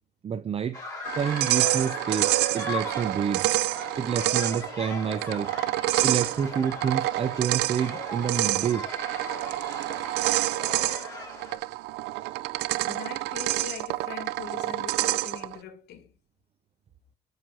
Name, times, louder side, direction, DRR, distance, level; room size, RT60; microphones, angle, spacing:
voice 1, 0.2-0.8 1.1-3.5 4.0-5.5 6.0-8.9, right 7 dB, 35° right, 0.7 m, -28 dB
sound 1, 0.7-11.6, left 3 dB, 20° left, 4.2 m, -39 dB
sound 2, 1.1-15.6, right 17 dB, 85° right, 0.5 m, -28 dB
voice 2, 12.8-16.2, left 8 dB, 75° left, 2.2 m, -42 dB
8.0 x 4.6 x 6.1 m
cardioid pair, 110°, 17 cm